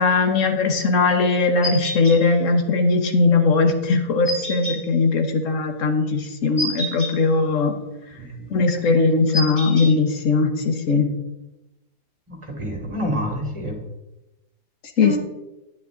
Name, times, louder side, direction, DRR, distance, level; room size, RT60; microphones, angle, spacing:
voice 1, 0.0-7.7 8.5-11.1 15.0-15.2, left 4 dB, 65° left, 5 dB, 1.5 m, -19 dB
sound 1, 1.6-2.2 4.2-4.8 6.6-7.1 9.3-9.9, left 1 dB, 30° left, 3.3 m, -27 dB
voice 2, 8.1-8.5 12.3-13.8 15.0-15.2, equal, 20° right, 1 dB, 2.3 m, -28 dB
9.7 x 9.4 x 3.9 m, 0.99 s
omnidirectional pair, 1.5 m